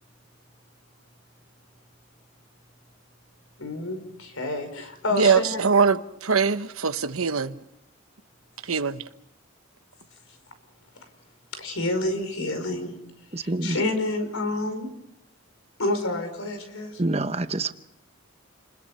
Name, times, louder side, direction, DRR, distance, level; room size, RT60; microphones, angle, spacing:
voice 1, 3.6-5.6 11.5-12.9 13.4-14.9 15.8-17.0, left 2 dB, 85° left, 5.3 m, -28 dB
voice 2, 5.1-7.5 8.7-9.0, right 5 dB, 85° right, 1.1 m, -22 dB
voice 3, 13.3-13.8 17.0-17.7, right 2 dB, 30° right, 0.9 m, -26 dB
30.0 x 21.0 x 5.6 m
head